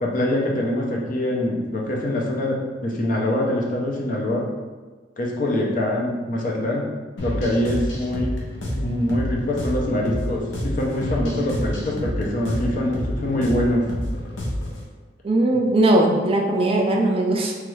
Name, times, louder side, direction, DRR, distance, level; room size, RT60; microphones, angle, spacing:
voice 1, 0.0-2.6 2.8-4.4 5.2-6.8 7.2-8.3 8.8-13.8, left 1 dB, 50° left, -1 dB, 0.5 m, -24 dB
sound 1, 7.2-14.8, left 1 dB, 90° left, 0.7 m, -28 dB
voice 2, 15.2-17.5, right 1 dB, 30° right, 1 dB, 0.3 m, -19 dB
3.0 x 2.3 x 3.1 m, 1.3 s
head